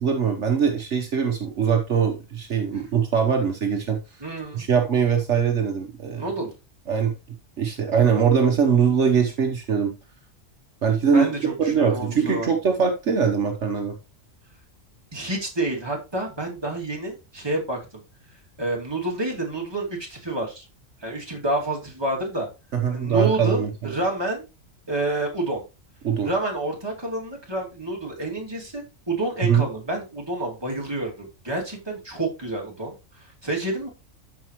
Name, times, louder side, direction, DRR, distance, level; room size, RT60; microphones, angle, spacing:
voice 1, 0.0-4.0 4.5-6.2 6.9-7.1 7.6-9.9 10.8-11.3 11.6-14.0 22.7-23.7 26.0-26.3 29.4-29.6, right 7 dB, 60° right, 3 dB, 1.3 m, -22 dB
voice 2, 4.2-4.7 6.1-6.5 11.0-12.5 15.1-18.0 18.6-20.7 21.0-22.5 22.9-24.4 24.9-25.6 26.2-33.9, right 2 dB, 20° right, -1 dB, 2.5 m, -29 dB
13.0 x 5.3 x 3.0 m, 0.27 s
omnidirectional pair, 1.4 m